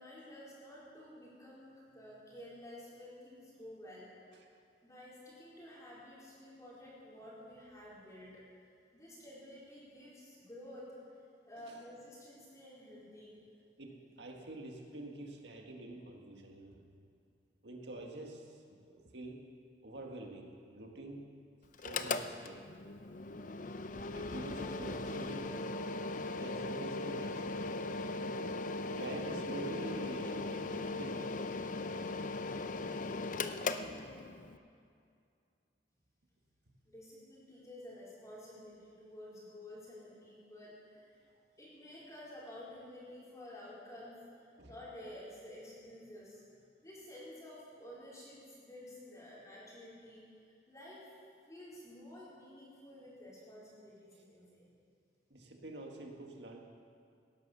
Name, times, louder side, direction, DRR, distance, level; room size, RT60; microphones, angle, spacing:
voice 1, 0.0-4.1 4.8-8.4 8.9-10.9 11.5-13.3 36.9-41.2 41.6-51.1 51.5-54.7, left 1 dB, 20° left, -8 dB, 4.3 m, -51 dB
voice 2, 13.8-16.8 17.6-19.5 19.8-21.3 21.8-22.7 24.1-25.5 26.4-27.7 29.0-31.4 33.8-34.0 44.6-44.7 55.3-56.6, right 2 dB, 75° right, 1 dB, 1.8 m, -46 dB
Mechanical fan, 21.7-34.6, left 3 dB, 45° left, 0.6 m, -39 dB
18.0 x 11.0 x 6.9 m, 2.4 s
head